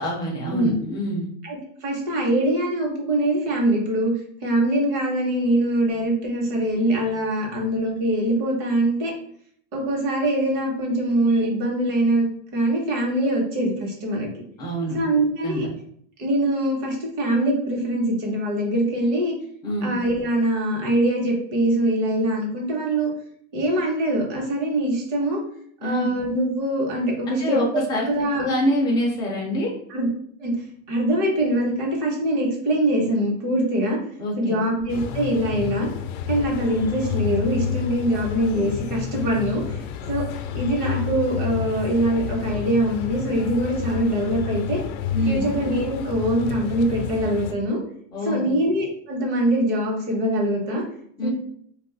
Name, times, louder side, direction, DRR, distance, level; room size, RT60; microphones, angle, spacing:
voice 1, 0.0-1.3 14.6-15.0 15.4-15.7 19.6-19.9 25.8-26.1 27.3-28.1 28.4-29.7 34.2-34.5 45.1-45.4 48.1-48.5 51.2-51.3, equal, 10° left, -3 dB, 0.3 m, -25 dB
voice 2, 1.4-4.1 4.4-9.1 9.7-12.3 12.5-14.3 14.9-15.7 16.2-19.3 19.8-23.1 23.5-25.4 25.8-28.4 29.9-30.1 30.4-30.6 30.9-34.0 34.4-35.9 36.3-39.8 40.1-40.2 40.5-44.8 45.2-47.8 48.2-50.8 51.2-51.3, right 1 dB, 50° right, 0 dB, 1.0 m, -23 dB
sound 1, 34.9-47.5, left 8 dB, 85° left, 0.5 m, -30 dB
2.6 x 2.3 x 3.8 m, 0.65 s
supercardioid pair, 155°, 42 cm